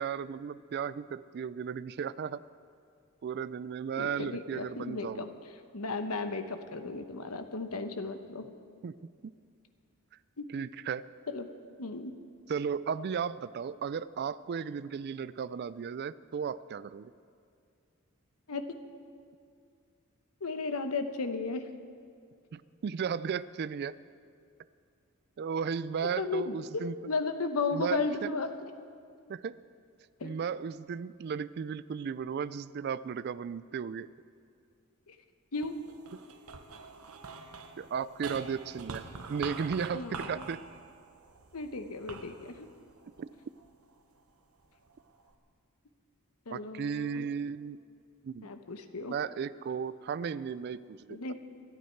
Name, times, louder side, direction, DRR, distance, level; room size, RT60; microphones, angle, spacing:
voice 1, 0.0-2.4 3.2-5.3 8.8-9.0 9.2-9.3 10.5-11.0 12.5-17.1 22.5-23.9 25.4-26.9 27.7-28.0 29.3-29.6 30.2-34.1 37.8-40.6 43.2-43.3 46.5-47.8 48.2-48.5 49.1-51.3, right 6 dB, 50° right, 17 dB, 0.3 m, -35 dB
voice 2, 4.0-5.3 5.7-8.5 10.4-10.5 11.3-11.5 11.8-12.1 18.5-18.7 20.4-21.7 26.0-28.5 30.2-30.4 35.1-35.2 35.5-35.8 39.9-40.4 41.5-42.7 46.5-47.2 48.4-49.1 51.1-51.3, left 3 dB, 85° left, 8 dB, 1.0 m, -35 dB
sound 1, 35.5-44.0 44.6-45.3, right 4 dB, 80° right, 1.0 m, -46 dB
26.0 x 9.4 x 4.5 m, 2.3 s
head